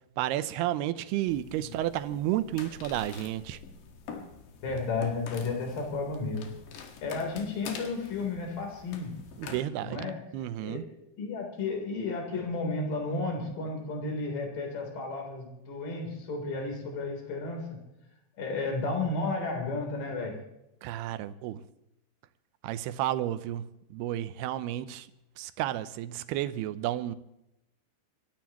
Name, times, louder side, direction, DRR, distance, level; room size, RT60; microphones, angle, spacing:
voice 1, 0.2-3.6 9.4-10.8 20.8-21.6 22.6-25.1 25.4-27.2, right 13 dB, 80° right, 2.7 m, -32 dB
sound 1, 1.3-9.6, left 6 dB, 80° left, 4.0 m, -46 dB
voice 2, 4.6-6.4 7.0-9.1 9.8-10.1 10.6-17.6 18.4-20.4, left 3 dB, 55° left, 5.1 m, -33 dB
28.0 x 13.5 x 3.0 m
omnidirectional pair, 4.9 m